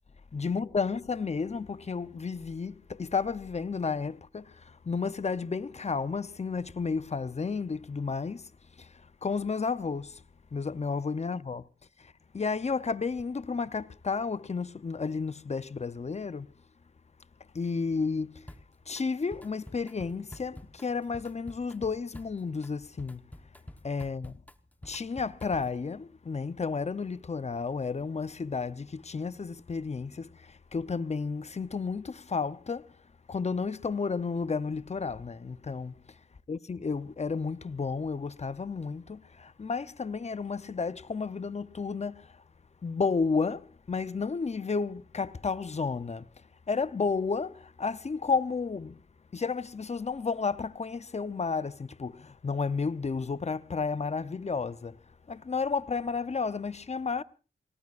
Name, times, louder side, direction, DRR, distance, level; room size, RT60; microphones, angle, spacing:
voice 1, 0.3-8.5 8.8-8.9 9.2-10.2 10.5-11.7 12.0-16.5 17.5-18.5 18.9-23.2 23.8-24.4 24.8-32.9 33.3-36.0 36.5-42.3 42.8-46.3 46.7-49.0 49.3-55.0 55.3-57.2, left 5 dB, 35° left, 0.7 m, -32 dB
Drum kit, 18.5-19.0 19.3-25.8, left 1 dB, 10° left, 1.1 m, -49 dB
27.5 x 18.5 x 2.5 m
cardioid pair, 65°, 20 cm